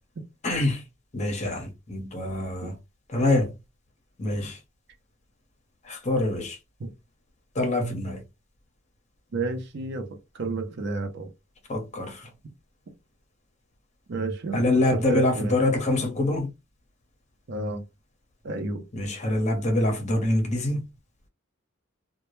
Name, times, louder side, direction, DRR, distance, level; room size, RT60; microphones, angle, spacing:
voice 1, 0.4-0.8 1.1-2.7 3.1-3.5 4.2-4.6 5.9-6.6 7.6-8.2 11.7-12.2 14.5-16.5 18.9-20.8, left 2 dB, 35° left, 0.8 m, -25 dB
voice 2, 9.3-11.3 14.1-15.6 17.5-17.8 18.4-18.8, right 3 dB, 55° right, 0.5 m, -31 dB
2.2 x 2.1 x 3.0 m
head